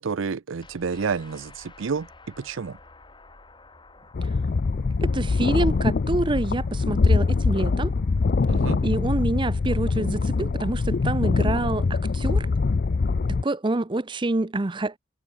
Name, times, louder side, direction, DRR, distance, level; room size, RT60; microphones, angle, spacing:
voice 1, 0.0-2.8 8.5-8.8, right 5 dB, 80° right, 0.5 m, -30 dB
sound 1, 0.6-11.5, left 2 dB, 25° left, 6.3 m, -53 dB
sound 2, 4.1-13.4, left 4 dB, 50° left, 0.4 m, -23 dB
voice 2, 5.0-7.9 8.8-12.5 13.3-15.0, right 2 dB, 25° right, 0.6 m, -27 dB
head